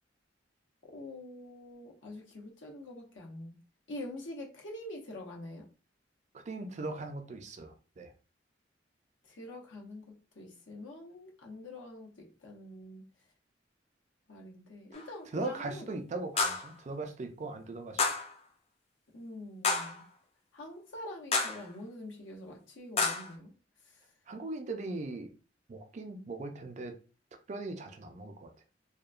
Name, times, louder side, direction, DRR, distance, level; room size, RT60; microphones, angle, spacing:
voice 1, 0.9-3.6 3.9-5.7 9.3-13.0 14.3-15.9 19.1-20.0 20.5-23.5, left 1 dB, 85° left, -1 dB, 0.8 m, -45 dB
voice 2, 6.5-8.1 15.3-18.0 24.3-25.3 25.7-27.0 27.5-28.5, right 2 dB, 40° right, 6 dB, 0.4 m, -39 dB
sound 1, 14.9-15.1 16.4-16.7 18.0-18.4 19.6-20.0 21.3-21.7 23.0-23.3, left 4 dB, 35° left, 0.4 m, -30 dB
2.8 x 2.1 x 2.4 m, 0.35 s
head